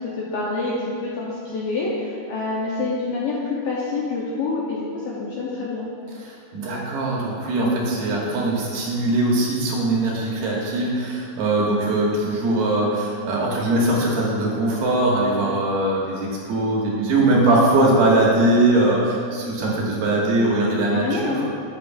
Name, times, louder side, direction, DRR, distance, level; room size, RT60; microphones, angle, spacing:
voice 1, 0.2-5.9 20.9-21.4, left 3 dB, 75° left, -6 dB, 2.2 m, -27 dB
voice 2, 6.2-21.4, right 2 dB, 70° right, -4 dB, 2.8 m, -21 dB
11.0 x 8.6 x 2.5 m, 2.4 s
omnidirectional pair, 5.0 m